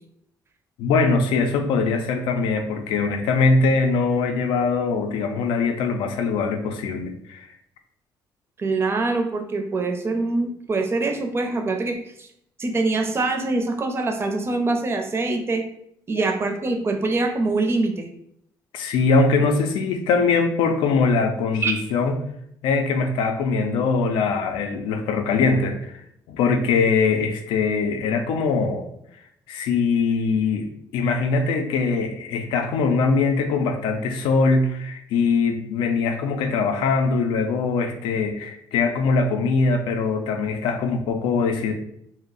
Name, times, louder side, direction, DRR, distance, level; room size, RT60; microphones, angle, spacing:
voice 1, 0.8-7.5 16.1-16.3 18.7-22.2 22.6-26.0 26.3-28.9 29.5-41.7, left 4 dB, 85° left, 6 dB, 0.4 m, -22 dB
voice 2, 8.6-12.3 12.6-15.6 16.1-18.1 21.6-21.7, right 3 dB, 30° right, 5 dB, 0.5 m, -24 dB
2.6 x 2.0 x 3.8 m, 0.72 s
cardioid pair, 95°, 8 cm